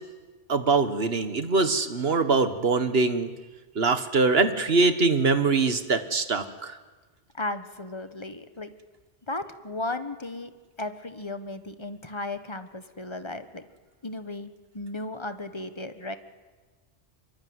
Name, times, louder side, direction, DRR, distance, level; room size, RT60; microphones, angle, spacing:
voice 1, 0.5-3.3 3.7-6.8, right 3 dB, 60° right, 10 dB, 1.7 m, -23 dB
voice 2, 7.3-8.7 9.3-10.5 10.8-13.7 14.0-16.2, left 2 dB, 25° left, 10 dB, 1.3 m, -35 dB
25.5 x 23.5 x 9.6 m, 1.3 s
omnidirectional pair, 1.2 m